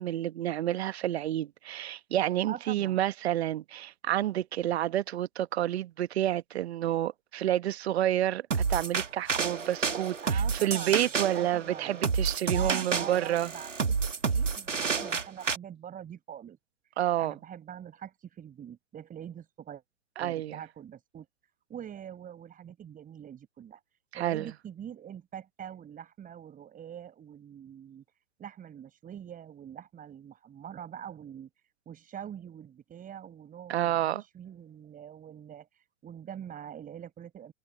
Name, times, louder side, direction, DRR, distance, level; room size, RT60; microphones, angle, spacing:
voice 1, 0.0-13.5 17.0-17.3 20.2-20.6 24.1-24.5 33.7-34.2, right 12 dB, 60° right, 1.1 m, -29 dB
voice 2, 2.5-3.0 10.2-11.1 11.3-12.0 12.4-16.6 17.2-19.8 20.2-21.3 21.7-23.8 24.1-28.0 28.4-31.5 31.8-37.5, right 9 dB, 20° right, 6.7 m, -44 dB
sound 1, 8.5-15.6, right 5 dB, 85° right, 1.7 m, -30 dB
figure-of-eight pair, 105°, 36 cm